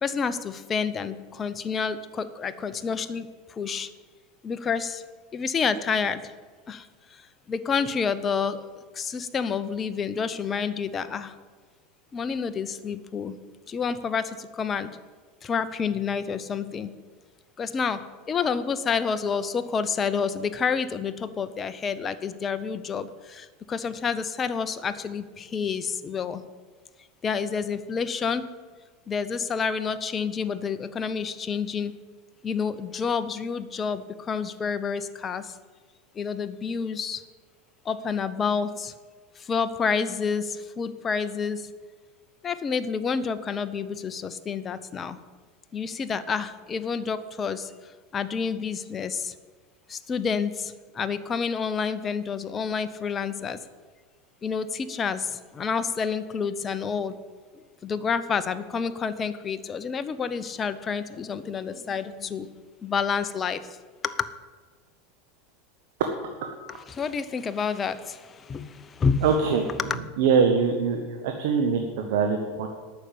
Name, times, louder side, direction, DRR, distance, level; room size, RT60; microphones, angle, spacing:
voice 1, 0.0-3.9 4.4-5.0 5.3-6.3 6.7-7.2 7.5-11.3 12.1-13.4 13.7-14.9 15.4-17.0 17.6-26.4 27.2-28.5 29.1-32.0 32.4-35.5 36.2-37.2 37.8-38.9 39.4-41.7 42.4-45.2 45.7-47.7 48.1-49.3 49.9-53.6 54.4-57.2 57.8-62.5 62.8-63.7 64.0-64.3 66.7-69.2 69.8-69.9, left 6 dB, 30° left, 12 dB, 0.8 m, -29 dB
voice 2, 69.2-69.7 70.2-72.7, right 5 dB, 70° right, 4 dB, 1.1 m, -23 dB
9.2 x 6.8 x 8.7 m, 1.5 s
hypercardioid pair, 90°, 0 cm